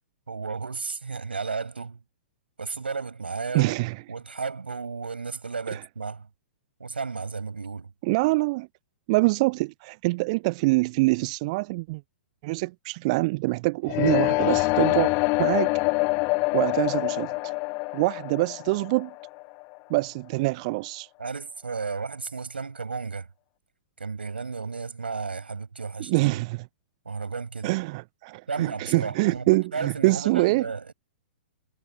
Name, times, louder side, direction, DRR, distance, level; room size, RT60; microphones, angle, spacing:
voice 1, 0.3-2.0 2.6-3.8 4.1-6.3 6.8-7.9 21.2-23.3 24.0-26.3 27.0-27.7 28.5-30.9, right 4 dB, 70° right, 6.3 m, -33 dB
voice 2, 3.5-4.0 5.7-5.8 8.0-8.7 9.1-12.0 12.4-15.1 15.4-15.7 16.5-17.5 17.9-19.1 19.9-21.1 26.1-26.7 27.6-30.7, right 24 dB, 35° right, 0.4 m, -25 dB
sound 1, 13.9-19.8, left 29 dB, 30° left, 0.5 m, -25 dB
figure-of-eight pair, 110°, 6 cm